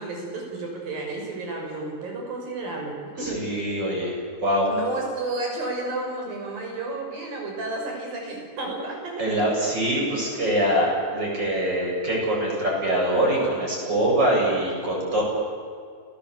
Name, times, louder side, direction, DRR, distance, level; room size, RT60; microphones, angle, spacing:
voice 1, 0.0-3.4 4.7-9.7, right 2 dB, 50° right, 0 dB, 7.7 m, -32 dB
voice 2, 3.2-4.1 4.4-4.7 9.2-15.2, right 1 dB, 20° right, -2 dB, 8.0 m, -23 dB
29.0 x 19.0 x 8.3 m, 2.1 s
omnidirectional pair, 5.5 m